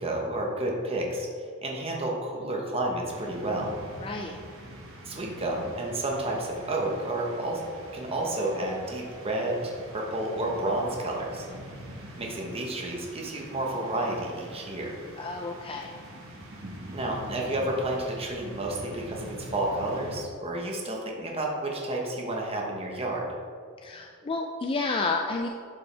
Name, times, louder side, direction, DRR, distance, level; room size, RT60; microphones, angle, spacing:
voice 1, 0.0-1.3 1.6-3.7 5.0-7.6 7.9-11.5 12.1-14.9 16.9-23.3, right 1 dB, 30° right, -1 dB, 1.1 m, -31 dB
sound 1, 3.1-20.2, right 1 dB, 65° right, 1.3 m, -44 dB
voice 2, 4.0-4.4 15.2-15.9 23.8-25.5, left 3 dB, 25° left, 2 dB, 0.4 m, -30 dB
11.0 x 5.3 x 3.3 m, 2.2 s
head